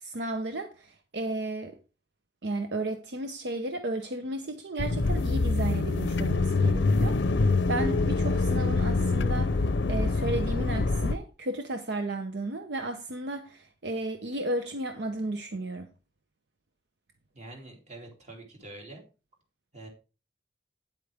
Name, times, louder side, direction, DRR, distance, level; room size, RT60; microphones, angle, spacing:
voice 1, 0.0-1.8 2.4-7.4 7.7-9.6 9.9-15.9, right 2 dB, 75° right, 0.8 m, -33 dB
sound 1, 4.8-11.1, left 3 dB, 90° left, 0.6 m, -25 dB
voice 2, 17.3-19.0 19.7-19.9, right 2 dB, 40° right, 2.8 m, -45 dB
9.2 x 8.2 x 3.5 m
head